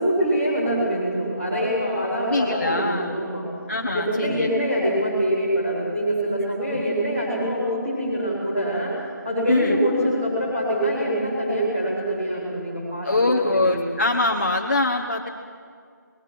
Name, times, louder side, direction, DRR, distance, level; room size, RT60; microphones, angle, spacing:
voice 1, 0.0-3.5 3.8-8.9 9.2-13.8, equal, 20° right, -10 dB, 4.3 m, -24 dB
voice 2, 2.3-3.1 3.7-4.5 6.7-6.8 9.5-9.8 13.0-15.3, left 2 dB, 35° left, 0 dB, 1.2 m, -23 dB
26.0 x 20.0 x 6.1 m, 2.1 s
figure-of-eight pair, 180°, 11 cm